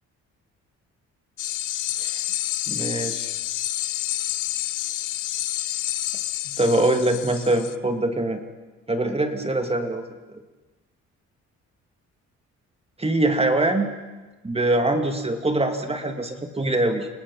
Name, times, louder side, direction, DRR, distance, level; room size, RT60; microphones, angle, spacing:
sound 1, 1.4-7.8, left 15 dB, 80° left, 0.8 m, -29 dB
voice 1, 2.7-3.3 6.6-8.4 8.9-10.0 10.3-10.4 13.0-13.9 14.4-17.1, right 2 dB, 20° right, 6 dB, 2.5 m, -23 dB
29.0 x 19.0 x 5.6 m, 1.2 s
cardioid pair, 90°, 30 cm